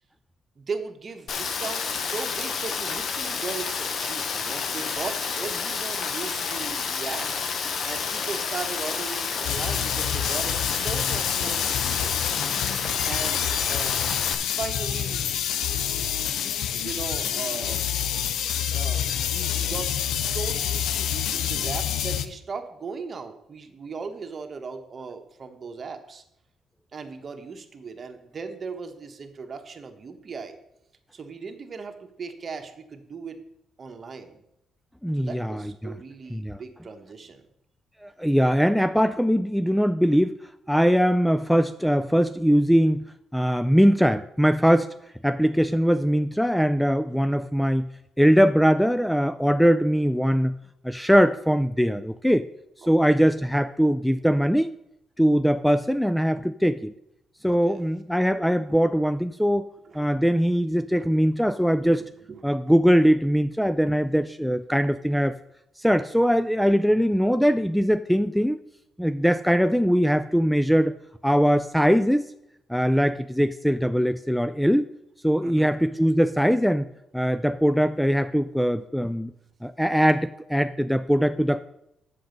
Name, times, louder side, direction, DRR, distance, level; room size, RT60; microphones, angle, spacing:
voice 1, 0.6-7.3 7.8-12.2 13.0-14.1 14.4-15.3 16.7-17.9 18.7-26.2 26.9-30.6 31.1-33.5 33.8-34.4 35.1-37.4 47.1-47.4 52.8-53.2 57.5-57.9 59.8-60.4 62.0-62.5 75.4-75.7, right 5 dB, 40° right, 6 dB, 1.2 m, -38 dB
Rain, 1.3-14.3, left 5 dB, 60° left, 0.9 m, -30 dB
sound 1, 9.4-22.3, left 9 dB, 85° left, 0.6 m, -27 dB
voice 2, 35.0-36.0 36.3-36.6 38.0-40.4 40.7-43.0 43.3-44.9 45.2-47.9 48.2-50.5 50.8-52.5 52.8-54.7 55.2-56.9 57.4-59.7 59.9-62.0 62.4-65.4 65.8-68.6 69.0-70.9 71.2-72.2 72.7-74.9 75.2-76.9 77.1-79.3 79.6-81.6, equal, ahead, 12 dB, 0.3 m, -21 dB
7.8 x 6.7 x 5.2 m, 0.81 s
cardioid pair, 90°, 0 cm